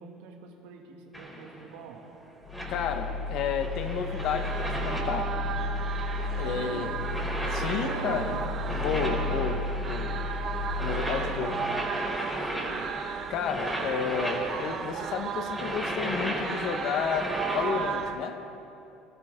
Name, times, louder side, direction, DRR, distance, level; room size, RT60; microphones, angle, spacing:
voice 1, 0.0-2.1 6.4-7.1 7.7-8.5 8.9-9.4 10.6-11.8 12.4-13.0, right 6 dB, 85° right, 2.2 m, -43 dB
sound 1, 1.1-1.7 2.5-17.7, equal, 5° left, 4.1 m, -36 dB
sound 2, 2.4-12.1, left 3 dB, 80° left, 1.0 m, -34 dB
voice 2, 2.7-5.4 6.4-7.0 7.5-8.4 8.7-10.1 10.8-11.6 13.3-18.5, left 7 dB, 60° left, 1.3 m, -32 dB
sound 3, 3.8-18.1, right 7 dB, 45° right, 1.0 m, -36 dB
25.5 x 13.5 x 3.8 m
supercardioid pair, 105°, 0 cm